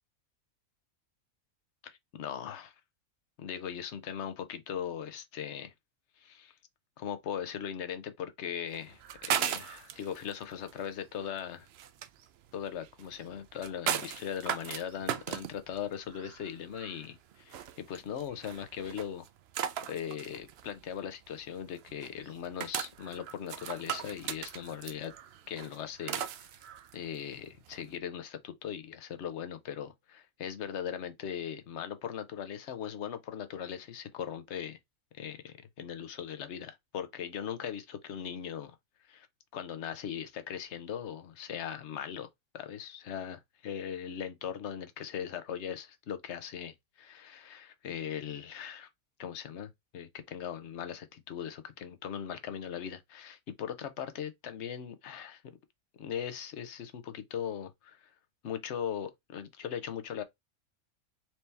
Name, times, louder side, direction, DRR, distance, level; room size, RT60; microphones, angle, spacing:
voice 1, 1.8-2.7 3.4-5.7 6.2-6.5 7.0-11.7 12.5-19.3 19.9-25.1 25.5-26.2 26.9-34.8 35.1-38.8 39.1-39.3 39.5-42.3 42.5-48.9 49.2-55.4 56.0-58.1 58.4-60.2, left 8 dB, 55° left, 1.0 m, -39 dB
sound 1, 8.7-27.9, right 9 dB, 65° right, 0.6 m, -38 dB
4.5 x 2.8 x 3.4 m
omnidirectional pair, 1.5 m